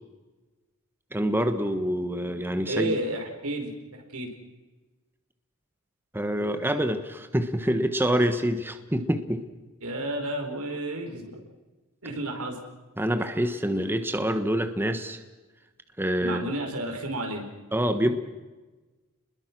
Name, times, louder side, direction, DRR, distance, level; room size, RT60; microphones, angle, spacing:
voice 1, 1.1-2.9 6.1-9.4 13.0-15.2 16.0-16.5 17.7-18.1, equal, 10° right, 7 dB, 1.4 m, -26 dB
voice 2, 2.7-4.3 9.8-11.4 12.0-12.6 16.2-17.5, right 1 dB, 85° right, 3 dB, 4.9 m, -31 dB
29.5 x 21.5 x 6.2 m, 1.2 s
head